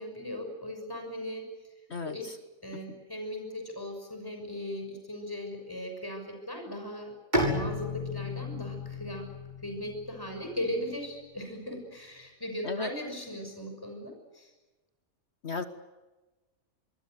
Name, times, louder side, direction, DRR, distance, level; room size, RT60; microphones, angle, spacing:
voice 1, 0.0-1.5 2.0-2.3 2.6-7.1 7.5-9.3 9.6-14.5, left 1 dB, 15° left, 5 dB, 6.4 m, -38 dB
voice 2, 1.9-2.3 12.6-12.9 15.4-15.6, left 4 dB, 50° left, 9 dB, 1.6 m, -34 dB
Bowed string instrument, 7.3-10.9, left 1 dB, 30° right, 6.7 m, -33 dB
26.0 x 24.0 x 8.0 m, 1.1 s
omnidirectional pair, 1.4 m